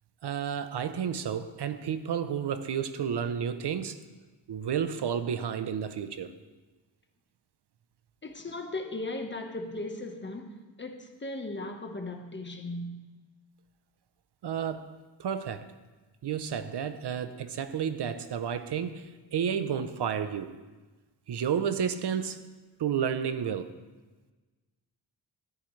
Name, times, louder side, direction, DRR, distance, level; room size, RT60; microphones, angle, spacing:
voice 1, 0.2-4.0 4.5-6.3 14.4-14.9 15.2-15.7 16.2-20.5 21.3-22.4 22.8-23.7, right 8 dB, 65° right, 0.8 m, -31 dB
voice 2, 8.2-13.1, left 2 dB, 25° left, 1.3 m, -37 dB
14.0 x 12.5 x 3.3 m
cardioid pair, 100°, 44 cm